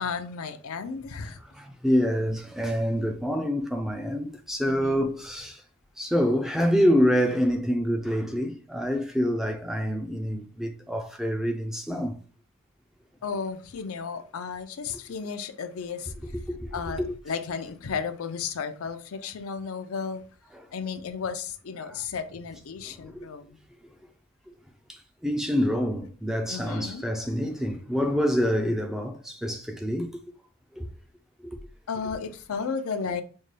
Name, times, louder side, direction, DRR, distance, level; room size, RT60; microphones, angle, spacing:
voice 1, 0.0-1.4 4.7-5.1 13.2-16.1 16.7-20.2 20.7-23.6 26.5-27.0 31.9-33.2, left 5 dB, 85° left, 0.5 m, -34 dB
voice 2, 1.4-5.6 6.0-12.2 16.2-16.7 21.8-22.0 22.8-23.3 24.9-30.2 30.8-30.9 31.4-31.6, equal, ahead, 0.3 m, -26 dB
5.3 x 2.2 x 3.2 m
head